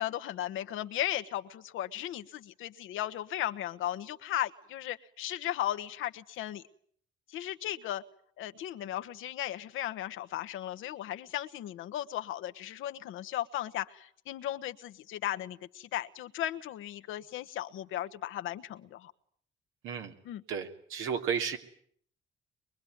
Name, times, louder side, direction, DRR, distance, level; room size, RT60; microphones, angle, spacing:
voice 1, 0.0-6.6 7.3-8.0 8.4-19.1 20.2-20.4, left 12 dB, 85° left, 9 dB, 1.3 m, -36 dB
voice 2, 19.8-20.1 20.5-21.6, right 7 dB, 85° right, 4 dB, 3.2 m, -33 dB
23.5 x 23.0 x 9.5 m, 0.62 s
cardioid pair, 90°, 20 cm